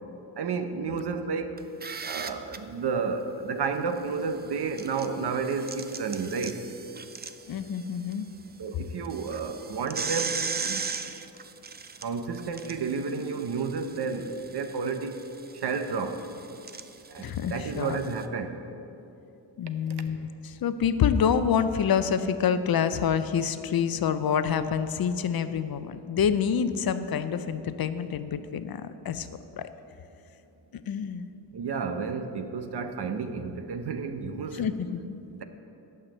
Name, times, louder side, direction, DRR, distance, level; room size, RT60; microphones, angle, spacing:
voice 1, 0.4-1.6 2.0-6.6 8.6-10.8 12.0-15.2 15.5-16.2 17.1-18.6 31.5-34.6 35.3-35.4, right 5 dB, 65° right, 8 dB, 0.8 m, -31 dB
sound 1, 1.6-2.6 4.5-8.1 8.5-8.6 9.0-18.2, right 5 dB, 25° right, 0.3 m, -38 dB
voice 2, 7.5-8.3 17.2-18.0 19.6-29.3 29.6-29.7 30.9-31.3 34.5-35.2, left 7 dB, 55° left, 11 dB, 0.5 m, -27 dB
12.0 x 5.9 x 7.7 m, 2.9 s
wide cardioid pair, 170°, 43 cm